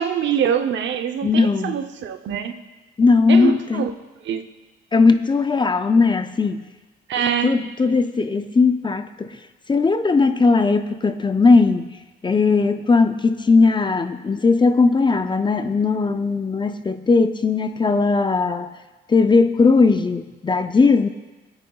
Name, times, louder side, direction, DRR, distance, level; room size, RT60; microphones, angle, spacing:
voice 1, 0.0-2.5 3.3-3.9 4.2-4.4 7.1-7.5, right 8 dB, 65° right, 7 dB, 0.8 m, -24 dB
voice 2, 1.2-1.8 3.0-3.8 4.9-6.6 7.4-9.4 9.7-12.0 12.2-18.7 19.1-21.1, left 4 dB, 25° left, 9 dB, 0.5 m, -18 dB
18.0 x 8.8 x 2.3 m, 1.2 s
cardioid pair, 90°, 20 cm